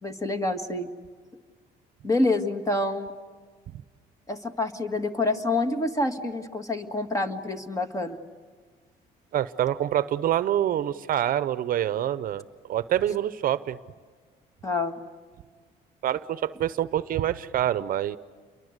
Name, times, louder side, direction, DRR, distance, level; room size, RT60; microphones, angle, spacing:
voice 1, 0.0-0.9 2.0-3.1 4.3-8.2 14.6-15.0, left 2 dB, 20° left, 7 dB, 1.8 m, -27 dB
voice 2, 9.3-12.4 12.7-13.8 16.0-18.2, right 11 dB, 55° right, 14 dB, 0.8 m, -26 dB
29.0 x 23.0 x 8.2 m, 1.5 s
cardioid pair, 110°, 17 cm